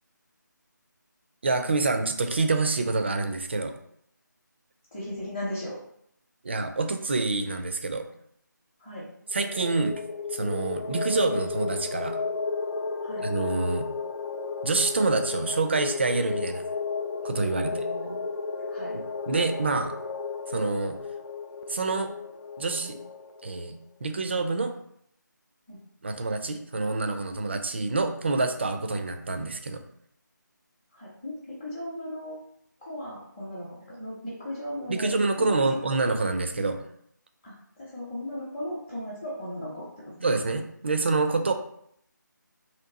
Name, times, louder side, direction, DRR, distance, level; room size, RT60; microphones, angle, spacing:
voice 1, 1.4-3.7 6.4-8.0 9.3-10.0 10.3-12.2 13.2-13.9 14.6-16.6 17.2-17.7 19.3-19.9 20.5-21.0 21.7-22.1 22.6-23.0 23.4-23.7 24.0-24.7 26.0-29.8 34.9-36.8 40.2-41.5, right 3 dB, 35° right, 6 dB, 0.4 m, -27 dB
voice 2, 4.9-5.8 8.8-9.1 13.0-13.2 17.5-18.2 18.7-19.0 25.7-25.8 30.9-32.4 32.8-35.9 37.4-40.2, left 1 dB, 15° left, -10 dB, 0.7 m, -37 dB
sound 1, 9.3-23.7, left 4 dB, 80° left, 0.4 m, -33 dB
3.1 x 2.9 x 3.8 m, 0.70 s
figure-of-eight pair, 160°, 11 cm